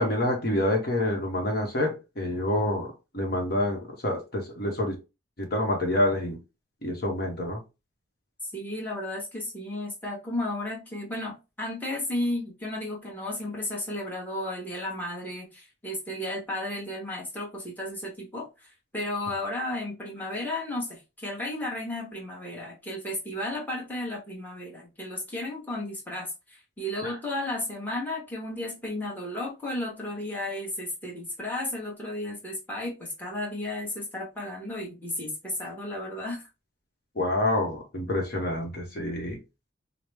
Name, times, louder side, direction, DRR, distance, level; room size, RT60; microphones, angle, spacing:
voice 1, 0.0-5.0 5.4-6.4 6.8-7.6 27.0-27.1 37.2-39.4, left 1 dB, 50° left, 0.9 m, -27 dB
voice 2, 8.4-36.4, left 1 dB, 10° left, 1.1 m, -33 dB
4.8 x 2.0 x 3.3 m
head